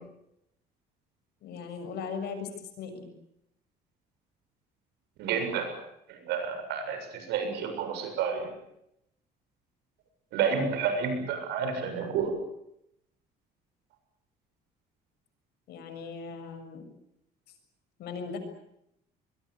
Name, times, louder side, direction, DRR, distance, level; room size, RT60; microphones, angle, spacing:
voice 1, 1.4-2.5 2.8-3.1 15.7-16.8 18.0-18.4, left 5 dB, 75° left, 7 dB, 6.8 m, -38 dB
voice 2, 5.2-5.7 6.1-8.5 10.3-12.3, right 6 dB, 85° right, 6 dB, 7.3 m, -30 dB
25.0 x 21.5 x 8.3 m, 0.79 s
cardioid pair, 110°, 17 cm